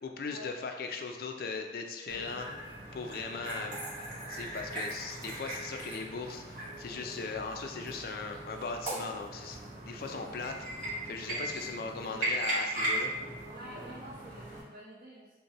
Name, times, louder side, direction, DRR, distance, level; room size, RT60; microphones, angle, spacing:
voice 1, 0.0-2.5 2.9-3.8 4.3-9.6 9.8-13.1, left 4 dB, 55° left, 4 dB, 0.3 m, -39 dB
sound 1, 2.1-14.6, right 1 dB, 45° right, 1.3 m, -38 dB
voice 2, 13.4-15.4, equal, 60° right, -11 dB, 1.0 m, -48 dB
5.3 x 2.1 x 2.9 m, 1.1 s
head